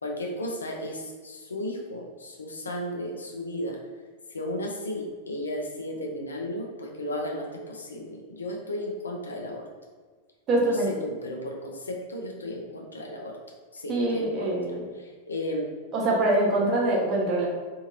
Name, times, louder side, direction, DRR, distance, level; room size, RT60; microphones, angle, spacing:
voice 1, 0.0-3.8 4.3-9.7 10.6-10.7 11.0-13.4 13.7-14.5 15.0-15.7, left 1 dB, 75° left, 0 dB, 0.5 m, -34 dB
voice 2, 10.5-10.9 13.9-14.8 15.9-17.5, right 1 dB, 30° right, -3 dB, 0.8 m, -24 dB
2.7 x 2.5 x 2.9 m, 1.4 s
figure-of-eight pair, 90°, 0 cm